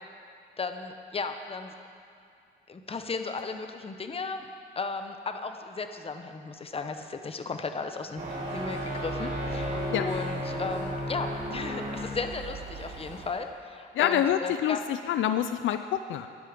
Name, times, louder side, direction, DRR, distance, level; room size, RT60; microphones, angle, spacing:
voice 1, 0.6-1.7 2.7-4.5 4.7-14.8, left 4 dB, 30° left, 7 dB, 1.0 m, -35 dB
sound 1, 8.2-13.3, equal, 40° right, 3.7 m, -34 dB
voice 2, 13.9-16.3, left 10 dB, 75° left, 10 dB, 0.5 m, -26 dB
14.0 x 10.5 x 5.2 m, 2.5 s
cardioid pair, 90°, 20 cm